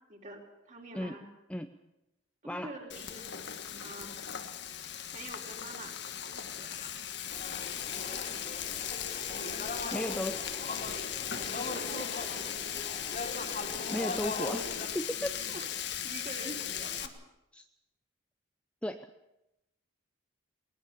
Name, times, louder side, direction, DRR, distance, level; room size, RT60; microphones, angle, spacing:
voice 1, 0.1-1.2 2.4-3.3 3.8-4.1 5.1-5.9 6.3-6.9 11.6-12.5 15.3-15.7 16.0-17.1, right 2 dB, 40° right, 0 dB, 4.1 m, -46 dB
Frying (food), 2.9-17.1, left 9 dB, 60° left, 1.4 m, -38 dB
sound 1, 7.3-14.9, left 3 dB, 40° left, 2.8 m, -39 dB
voice 2, 9.9-10.4 13.9-14.7 14.9-15.3 17.5-17.6 18.8-19.1, equal, 5° left, 7 dB, 0.6 m, -34 dB
20.5 x 20.0 x 7.0 m, 0.90 s
head